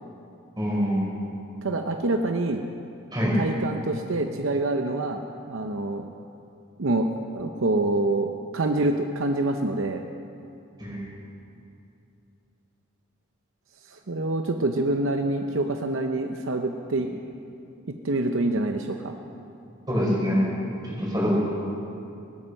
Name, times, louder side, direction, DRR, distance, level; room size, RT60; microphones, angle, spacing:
voice 1, 0.6-1.2 3.1-3.4 10.8-11.0 19.9-20.4 20.8-21.3, equal, 20° right, -5 dB, 4.6 m, -25 dB
voice 2, 1.6-2.6 3.3-6.1 6.8-10.0 13.9-17.1 17.9-19.1, right 2 dB, 65° right, 5 dB, 0.7 m, -26 dB
19.0 x 13.0 x 5.6 m, 2.6 s
head